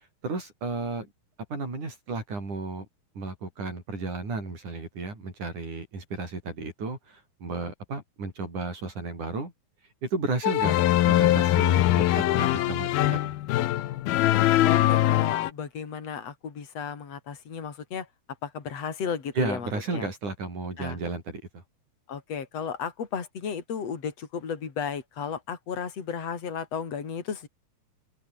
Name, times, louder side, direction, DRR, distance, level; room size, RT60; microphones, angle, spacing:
voice 1, 0.2-1.1 1.5-2.9 3.2-9.5 10.0-10.8 11.0-13.3 19.4-21.6, right 3 dB, 55° right, 9.0 m, -33 dB
sound 1, 10.4-15.5, left 14 dB, 90° left, 3.1 m, -22 dB
voice 2, 14.6-18.1 18.4-20.1 20.8-21.0 22.1-27.5, left 7 dB, 45° left, 4.5 m, -34 dB
open air
omnidirectional pair, 4.3 m